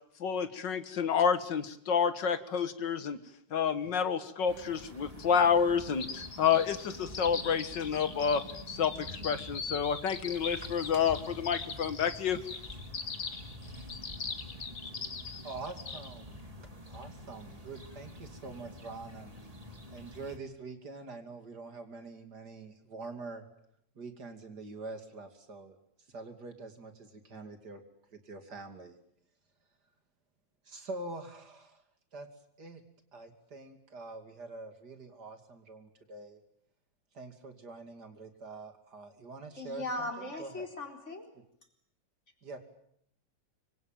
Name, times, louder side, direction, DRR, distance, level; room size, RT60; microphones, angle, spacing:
voice 1, 0.2-3.2 3.5-8.4 8.7-12.4, left 7 dB, 85° left, 12 dB, 2.1 m, -29 dB
sound 1, 4.5-20.4, equal, 20° right, 3.0 m, -48 dB
sound 2, 6.0-16.1, left 5 dB, 60° left, 2.4 m, -41 dB
voice 2, 15.4-19.4 19.9-23.4 23.9-25.8 26.1-27.8 28.1-29.0 30.6-31.8 32.1-32.3 32.6-32.8 33.1-36.4 37.1-40.7 42.4-42.6, right 3 dB, 65° right, 7 dB, 3.3 m, -45 dB
voice 3, 39.6-41.3, left 2 dB, 40° left, 3 dB, 4.5 m, -38 dB
25.5 x 24.0 x 9.1 m, 0.72 s
omnidirectional pair, 1.9 m